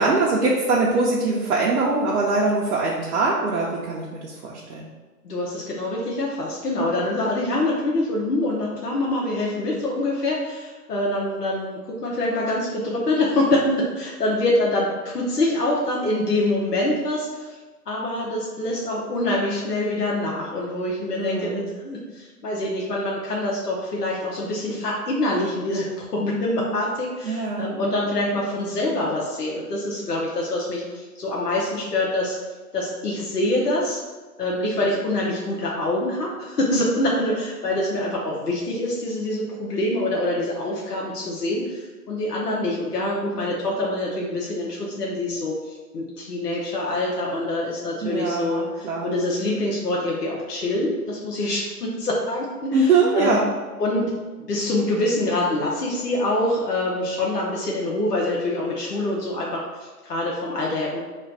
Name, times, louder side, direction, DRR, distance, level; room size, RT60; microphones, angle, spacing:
voice 1, 0.0-4.9 21.2-21.6 27.2-27.7 48.0-49.1 52.7-53.5, right 3 dB, 70° right, -4 dB, 0.8 m, -22 dB
voice 2, 5.2-17.5 17.9-32.4 32.7-34.0 34.4-45.5 45.9-53.4 53.8-54.1 54.5-61.0, left 1 dB, 90° left, -3 dB, 0.9 m, -25 dB
3.2 x 2.3 x 3.9 m, 1.3 s
hypercardioid pair, 140°, 46 cm